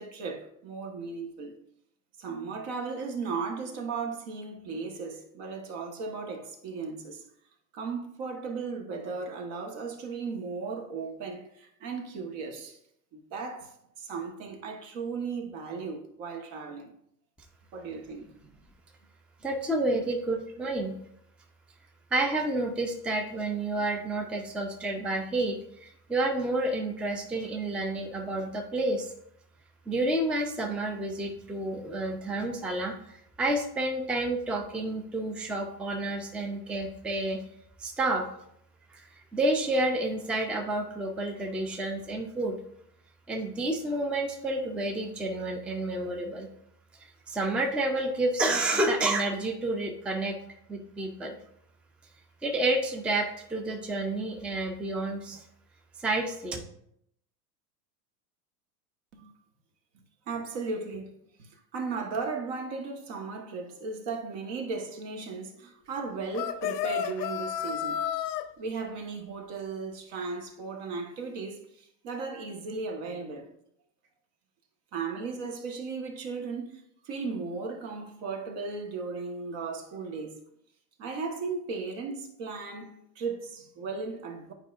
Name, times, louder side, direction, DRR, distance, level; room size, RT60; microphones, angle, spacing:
voice 1, 0.0-1.6 2.2-7.2 7.7-12.8 13.1-16.9 17.7-18.3 59.1-59.3 60.3-68.0 68.6-73.5 74.9-80.4 81.0-84.5, right 4 dB, 55° right, 1.4 m, -36 dB
voice 2, 19.4-20.9 22.1-29.1 29.9-37.4 37.8-38.3 38.9-42.6 43.3-46.5 47.0-50.4 50.7-51.4 52.4-55.4 56.0-56.6, right 2 dB, ahead, 0.5 m, -30 dB
sound 1, 66.3-68.4, left 10 dB, 80° left, 0.8 m, -31 dB
9.7 x 4.7 x 2.5 m
hypercardioid pair, 100°, 50 cm